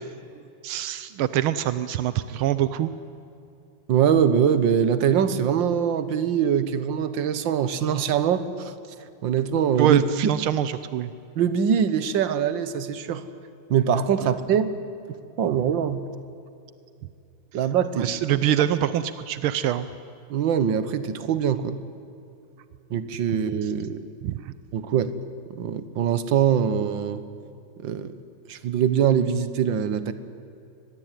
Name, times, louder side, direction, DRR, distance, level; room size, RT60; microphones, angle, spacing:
voice 1, 0.6-2.9 9.8-11.1 17.9-19.9 24.2-24.5, right 11 dB, 85° right, 13 dB, 1.6 m, -24 dB
voice 2, 3.9-8.7 9.2-10.0 11.4-13.2 13.7-14.7 15.4-16.0 17.5-18.1 20.3-21.8 22.9-24.0 24.7-25.1 25.6-27.2 27.8-28.1 28.5-30.1, right 8 dB, 65° right, 12 dB, 1.9 m, -23 dB
24.5 x 20.5 x 9.1 m, 2.6 s
omnidirectional pair, 2.3 m